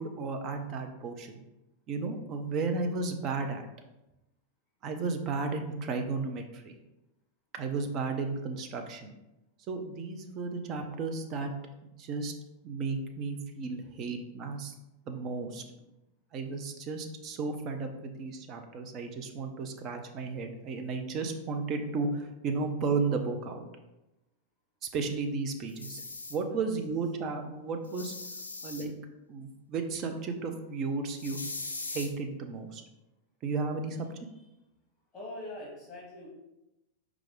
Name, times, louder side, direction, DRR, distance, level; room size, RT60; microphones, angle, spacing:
voice 1, 0.0-1.4 1.9-3.6 4.8-6.7 7.5-9.1 9.7-11.5 12.0-12.3 12.6-14.7 15.1-15.6 16.3-23.7 24.9-26.0 26.3-28.1 28.6-28.9 29.3-31.4 31.9-32.8 33.4-34.1, right 4 dB, 35° right, 5 dB, 0.5 m, -34 dB
sound 1, 25.7-26.4 27.8-28.8 31.2-32.1, left 3 dB, 75° left, 0.4 m, -40 dB
voice 2, 35.1-36.3, left 1 dB, 10° left, -4 dB, 1.1 m, -43 dB
4.8 x 2.4 x 3.5 m, 0.96 s
figure-of-eight pair, 90°, 0 cm